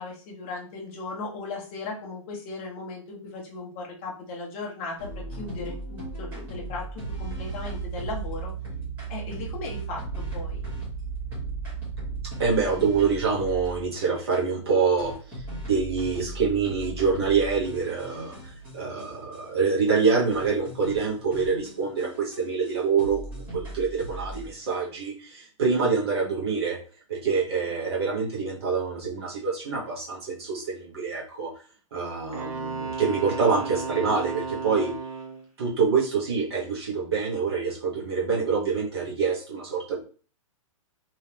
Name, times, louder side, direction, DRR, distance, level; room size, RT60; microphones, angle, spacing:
voice 1, 0.0-8.5 9.1-10.6, left 3 dB, 25° left, -2 dB, 0.8 m, -37 dB
sound 1, 5.0-13.9 14.3-14.4 15.0-19.4 19.7-19.8 20.0-20.1 20.3-22.7 23.0-24.7, right 3 dB, 10° right, 1.2 m, -36 dB
voice 2, 12.4-18.3 18.7-26.8 27.1-31.5 31.9-34.9 35.6-40.0, right 5 dB, 50° right, -4 dB, 1.2 m, -26 dB
Wind instrument woodwind instrument, 32.3-35.5, right 4 dB, 85° right, 1.5 m, -34 dB
3.5 x 3.0 x 2.9 m, 0.39 s
hypercardioid pair, 175°, 17 cm